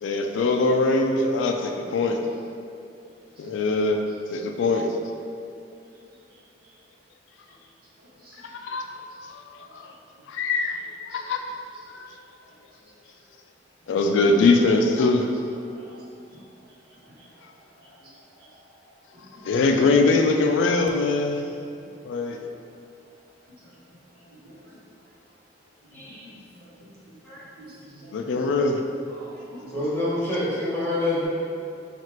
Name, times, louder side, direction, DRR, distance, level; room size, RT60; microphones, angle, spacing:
voice 1, 0.0-2.2 3.4-4.0 4.3-4.9 8.4-8.9 9.3-9.9 10.3-10.8 11.1-11.4 11.9-12.1 13.9-15.3 19.4-21.4 22.0-22.4 28.1-28.8, left 3 dB, 80° left, 3 dB, 0.3 m, -22 dB
voice 2, 3.0-3.5 5.9-6.8 7.5-7.6 8.0-9.0 9.6-10.0 11.1-11.2 12.1-12.2 12.8-12.9 13.2-13.3 14.0-14.1 15.7-15.9 16.3-17.5 17.7-18.5 19.1-19.5 20.6-21.0 21.4-21.9 23.6-23.7 24.1-24.8 25.9-26.2 26.5-28.1 28.4-28.5 29.5-30.0, equal, 55° right, -8 dB, 1.0 m, -51 dB
voice 3, 25.9-26.2 27.2-27.4 29.2-29.3 29.7-31.3, left 1 dB, 10° left, -11 dB, 1.0 m, -27 dB
4.3 x 2.4 x 3.0 m, 2.5 s
head